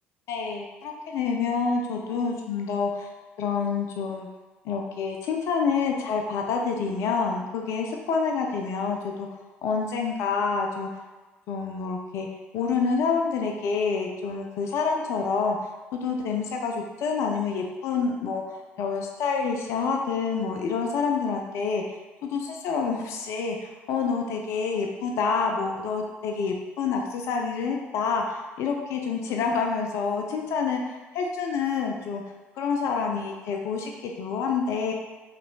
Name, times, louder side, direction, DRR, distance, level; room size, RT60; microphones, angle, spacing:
voice 1, 0.3-3.1 3.4-4.3 4.6-9.3 9.6-10.9 11.5-12.3 12.5-15.6 16.0-21.8 22.2-32.2 32.6-34.9, left 5 dB, 55° left, 2 dB, 0.4 m, -27 dB
4.9 x 3.1 x 2.2 m, 1.2 s
figure-of-eight pair, 55°, 6 cm